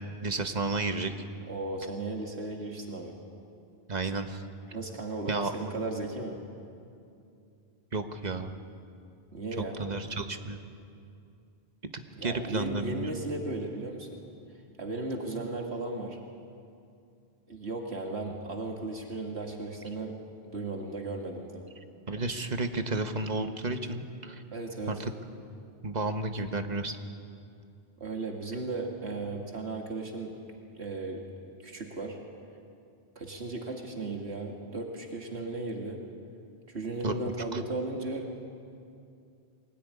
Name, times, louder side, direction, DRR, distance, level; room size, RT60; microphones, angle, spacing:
voice 1, 0.2-1.1 3.9-4.4 5.3-5.5 7.9-8.5 9.6-10.6 12.2-13.1 22.1-24.4 24.9-25.1 25.8-27.0 37.0-37.1 37.5-37.6, right 3 dB, 45° right, 7 dB, 1.4 m, -32 dB
voice 2, 1.4-3.2 4.7-6.4 9.3-9.8 12.1-14.2 14.8-16.2 17.5-20.2 20.4-21.6 24.5-25.0 28.0-31.2 31.6-32.2 33.2-36.0 36.7-38.3, right 2 dB, 85° right, 1 dB, 2.5 m, -36 dB
22.5 x 18.5 x 9.8 m, 2.5 s
omnidirectional pair, 1.1 m